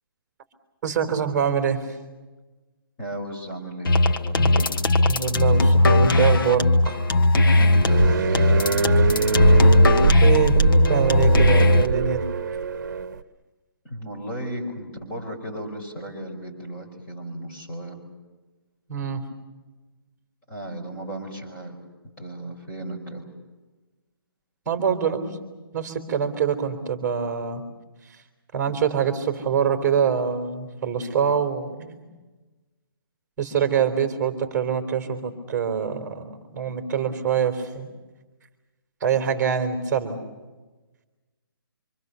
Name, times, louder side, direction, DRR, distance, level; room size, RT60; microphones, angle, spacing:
voice 1, 0.8-1.8 4.4-4.6 5.0-7.0 10.2-10.5 10.9-12.2 18.9-19.2 24.6-25.2 25.7-27.6 28.5-32.0 33.4-37.9 39.0-40.2, right 7 dB, 10° right, 5 dB, 3.4 m, -24 dB
voice 2, 3.0-4.7 7.5-9.8 13.8-18.0 20.5-21.9 22.2-23.3, right 1 dB, 15° left, -2 dB, 4.9 m, -36 dB
sound 1, 3.9-11.9, left 1 dB, 65° left, 1.5 m, -17 dB
sound 2, 7.9-13.2, right 6 dB, 50° right, 1.1 m, -23 dB
26.5 x 25.5 x 6.9 m, 1.2 s
hypercardioid pair, 170°, 12 cm